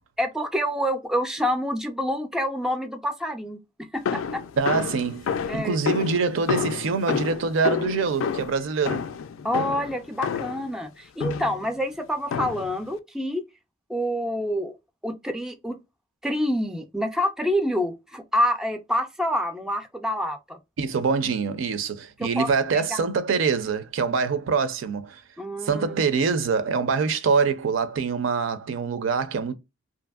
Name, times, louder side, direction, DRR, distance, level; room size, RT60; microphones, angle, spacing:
voice 1, 0.2-3.6 3.9-4.4 5.5-5.8 9.4-13.4 13.9-14.8 15.0-15.8 16.2-20.6 22.2-23.0 25.4-26.0, equal, 5° right, 0.3 m, -27 dB
sound 1, 4.1-10.7 11.2-11.7 12.3-12.8, left 6 dB, 80° left, 0.3 m, -29 dB
voice 2, 4.6-9.1 20.8-25.2 25.6-29.5, right 5 dB, 70° right, 0.4 m, -25 dB
2.7 x 2.5 x 2.2 m
head